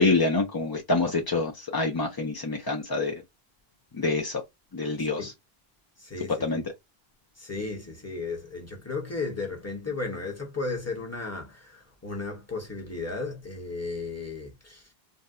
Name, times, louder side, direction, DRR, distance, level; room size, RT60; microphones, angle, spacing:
voice 1, 0.0-3.2 3.9-4.4 4.7-5.3 6.4-6.6, left 3 dB, 40° left, 0.3 m, -26 dB
voice 2, 6.0-6.6 7.4-14.9, left 3 dB, 15° left, 0.9 m, -35 dB
2.7 x 2.1 x 3.5 m
omnidirectional pair, 1.0 m